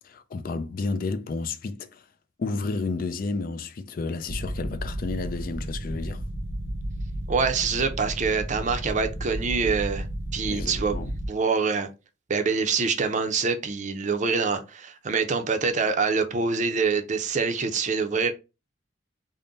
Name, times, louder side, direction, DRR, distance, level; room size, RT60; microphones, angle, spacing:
voice 1, 0.0-2.0 2.4-6.2 10.5-11.1, left 3 dB, 50° left, 0.4 m, -31 dB
sound 1, 4.3-11.3, right 1 dB, 65° left, 1.2 m, -33 dB
voice 2, 7.3-10.1 10.3-11.0 11.3-11.9 12.3-18.3, right 5 dB, 40° right, 0.5 m, -25 dB
3.6 x 2.1 x 3.8 m
head